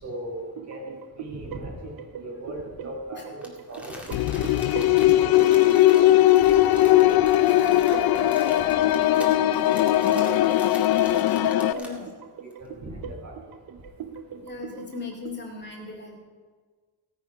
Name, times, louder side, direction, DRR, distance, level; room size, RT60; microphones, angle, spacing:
voice 1, 0.0-4.6 5.2-6.3 6.6-7.1 7.4-10.5 11.4-12.0 12.6-13.3, right 1 dB, 45° right, -2 dB, 4.5 m, -39 dB
sound 1, 0.6-15.4, right 7 dB, 60° right, 0.8 m, -41 dB
Crumpling crinkling, 3.4-12.1 12.5-12.6, equal, 5° right, 2.2 m, -44 dB
sound 2, 4.1-11.7, left 14 dB, 65° left, 0.5 m, -19 dB
voice 2, 5.5-5.9 10.7-10.8 11.3-12.1 12.5-12.6 14.4-16.2, left 4 dB, 25° left, -1 dB, 2.3 m, -39 dB
16.5 x 9.4 x 5.3 m, 1.5 s
cardioid pair, 130°, 40 cm